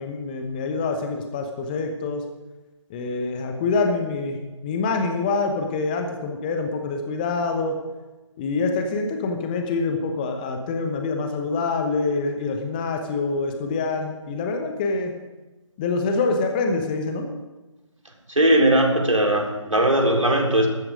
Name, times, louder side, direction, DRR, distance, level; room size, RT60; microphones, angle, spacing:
voice 1, 0.0-2.2 2.9-7.8 8.4-15.1 15.8-17.3, left 3 dB, 15° left, 4 dB, 1.0 m, -25 dB
voice 2, 18.3-20.7, right 1 dB, 75° right, 1 dB, 3.7 m, -19 dB
13.5 x 13.5 x 5.1 m, 1.1 s
figure-of-eight pair, 150°, 17 cm